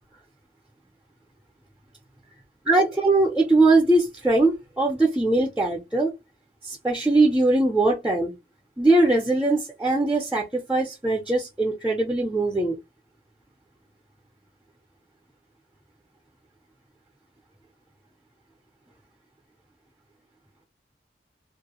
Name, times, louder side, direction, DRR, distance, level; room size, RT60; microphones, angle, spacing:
voice 1, 2.7-6.1 6.7-8.3 8.8-12.7, right 2 dB, 5° right, 0.4 m, -21 dB
2.3 x 2.1 x 2.9 m
head